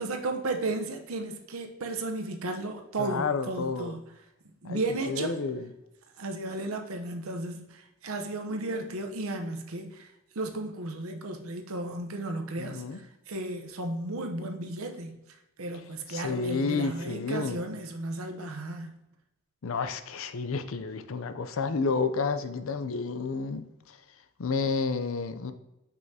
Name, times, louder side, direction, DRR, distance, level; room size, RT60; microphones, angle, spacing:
voice 1, 0.0-4.0 4.6-5.4 6.2-10.1 10.3-15.1 15.6-18.9, right 2 dB, 85° right, 0.8 m, -34 dB
voice 2, 3.0-4.0 4.6-4.8 5.1-5.7 12.6-13.0 16.1-17.6 19.6-24.0 24.4-25.5, left 4 dB, 75° left, 0.5 m, -30 dB
6.2 x 5.5 x 2.8 m
head